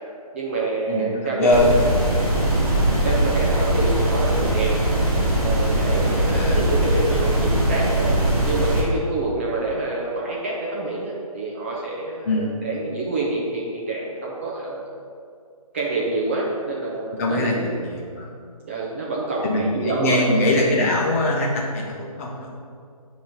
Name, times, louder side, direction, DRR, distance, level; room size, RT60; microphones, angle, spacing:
voice 1, 0.3-1.6 2.4-2.7 3.0-4.9 5.4-8.2 8.4-14.8 15.7-17.7 18.6-20.7, right 3 dB, 20° right, -4 dB, 0.6 m, -27 dB
voice 2, 0.9-1.9 6.3-6.6 12.2-12.5 17.1-17.6 17.8-18.3 19.4-22.5, left 1 dB, 20° left, -3 dB, 1.0 m, -22 dB
sound 1, 1.5-8.8, right 1 dB, 35° right, 1.9 m, -21 dB
9.2 x 3.2 x 5.8 m, 2.3 s
figure-of-eight pair, 160°, 19 cm